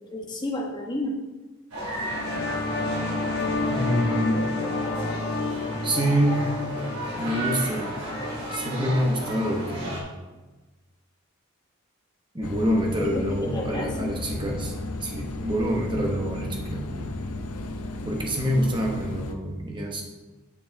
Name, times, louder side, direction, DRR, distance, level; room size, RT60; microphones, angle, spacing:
voice 1, 0.1-1.2 13.0-14.1, left 1 dB, 20° left, -1 dB, 1.1 m, -31 dB
sound 1, 1.7-10.0, right 1 dB, 85° right, 3.0 m, -34 dB
sound 2, 1.9-9.3, left 3 dB, 45° left, 1.0 m, -30 dB
voice 2, 3.7-4.5 5.8-6.5 7.2-8.1 8.5-10.1 12.3-14.7 15.0-17.1 18.0-20.0, equal, 20° right, 0 dB, 1.1 m, -26 dB
sound 3, 12.4-19.3, left 2 dB, 85° left, 0.8 m, -34 dB
8.5 x 6.3 x 4.0 m, 1.2 s
head